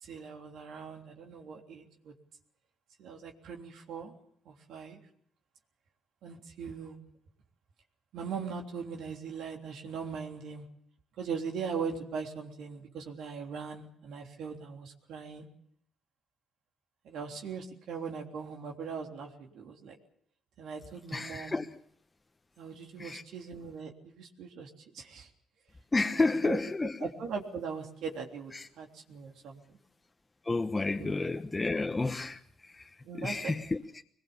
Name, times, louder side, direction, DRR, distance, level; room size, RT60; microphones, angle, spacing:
voice 1, 0.0-2.1 3.0-4.1 4.5-5.0 6.2-7.0 8.1-10.7 11.2-15.5 17.0-19.9 20.6-21.6 22.6-25.3 26.1-26.6 27.0-29.8 31.0-31.3 33.0-33.6, right 6 dB, 80° right, 3.4 m, -40 dB
voice 2, 21.1-21.8 23.0-23.2 25.9-27.1 28.5-28.7 30.4-34.0, left 3 dB, 20° left, 1.2 m, -31 dB
22.5 x 21.0 x 7.1 m
cardioid pair, 90°, 0 cm